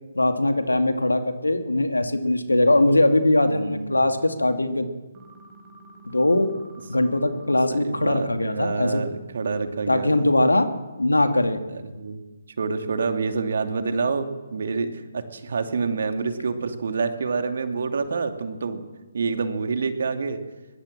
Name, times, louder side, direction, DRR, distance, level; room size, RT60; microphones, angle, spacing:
voice 1, 0.1-4.9 6.1-6.5 6.9-9.0 9.9-10.7 11.0-11.6, left 1 dB, 80° left, 7 dB, 2.5 m, -21 dB
voice 2, 3.5-3.9 7.5-10.3 11.7-12.2 12.6-18.9 19.1-20.4, right 4 dB, 55° right, 7 dB, 2.6 m, -27 dB
sound 1, 5.1-7.6, right 3 dB, 20° right, 4.3 m, -48 dB
22.5 x 21.0 x 7.5 m, 1.2 s
figure-of-eight pair, 140°, 0 cm